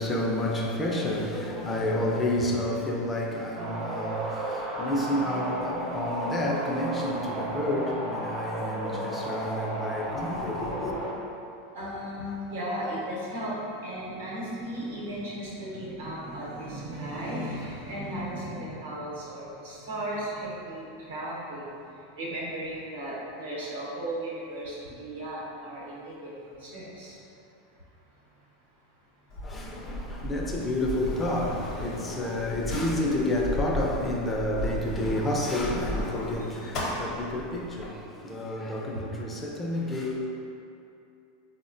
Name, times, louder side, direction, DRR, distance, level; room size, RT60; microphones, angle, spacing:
voice 1, 0.0-11.0 29.4-40.3, left 1 dB, 20° left, -2 dB, 0.4 m, -30 dB
sound 1, 3.6-11.1, right 1 dB, 50° right, 0.6 m, -33 dB
voice 2, 11.7-21.6 22.2-26.3 26.6-27.1 36.6-36.7, right 1 dB, 85° right, -6 dB, 0.9 m, -35 dB
Sliding door, 29.3-37.9, left 1 dB, 50° left, 0.7 m, -35 dB
3.5 x 2.1 x 2.5 m, 2.7 s
hypercardioid pair, 105°, 0 cm